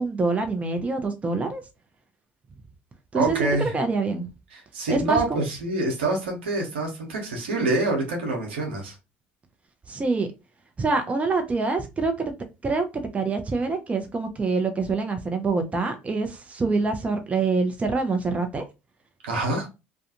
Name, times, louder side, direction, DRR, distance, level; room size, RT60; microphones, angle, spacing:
voice 1, 0.0-1.6 3.1-4.3 4.9-5.4 9.9-10.3 10.8-12.3 12.6-12.8 13.1-18.6, right 3 dB, 25° right, 6 dB, 0.6 m, -25 dB
voice 2, 3.1-3.7 4.5-8.9 19.2-19.7, right 2 dB, 85° right, 0 dB, 0.9 m, -26 dB
2.4 x 2.2 x 2.8 m, 0.26 s
hypercardioid pair, 75°, 6 cm